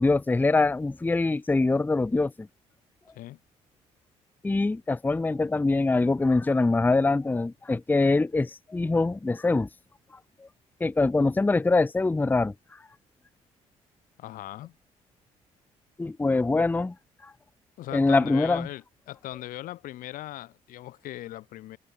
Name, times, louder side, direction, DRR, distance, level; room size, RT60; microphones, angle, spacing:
voice 1, 0.0-2.5 4.4-9.7 10.4-10.5 10.8-12.5 16.0-16.9 17.2-17.3 17.9-18.7, left 3 dB, 15° left, 0.5 m, -24 dB
voice 2, 14.2-14.7 17.8-21.8, left 15 dB, 75° left, 0.8 m, -39 dB
supercardioid pair, 60°, 14 cm